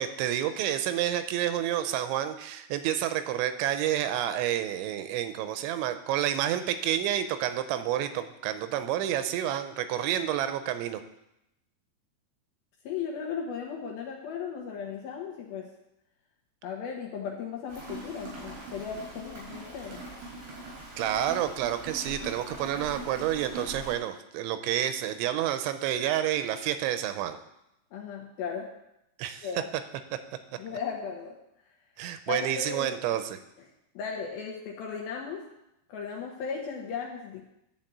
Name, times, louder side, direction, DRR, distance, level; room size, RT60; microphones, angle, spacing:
voice 1, 0.0-11.0 21.0-27.4 29.2-29.5 32.0-33.4, right 11 dB, 90° right, 10 dB, 3.0 m, -29 dB
voice 2, 12.8-15.7 16.6-20.0 27.9-28.7 29.4-29.7 30.6-31.4 32.3-33.2 33.9-35.5 35.9-37.4, left 6 dB, 70° left, 0 dB, 2.4 m, -36 dB
Rain, 17.7-24.0, right 2 dB, 70° right, 6.6 m, -42 dB
11.5 x 4.4 x 7.8 m, 0.83 s
omnidirectional pair, 5.3 m